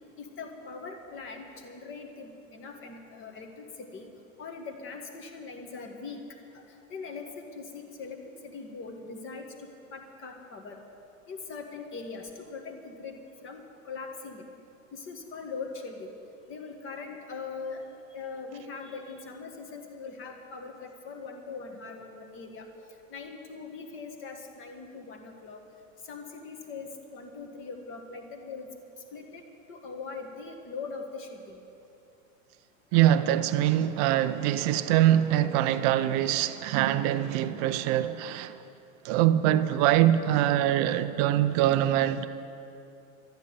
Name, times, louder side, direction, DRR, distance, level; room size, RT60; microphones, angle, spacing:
voice 1, 0.2-4.1 4.4-6.6 6.9-10.8 11.3-14.4 14.9-16.1 16.5-22.7 23.1-25.6 26.0-28.7 29.1-29.4 29.7-31.6, left 4 dB, 30° left, 1.7 m, -41 dB
voice 2, 32.9-38.6 39.0-42.2, right 12 dB, 30° right, 0.4 m, -24 dB
13.0 x 9.9 x 9.5 m
supercardioid pair, 145°, 40 cm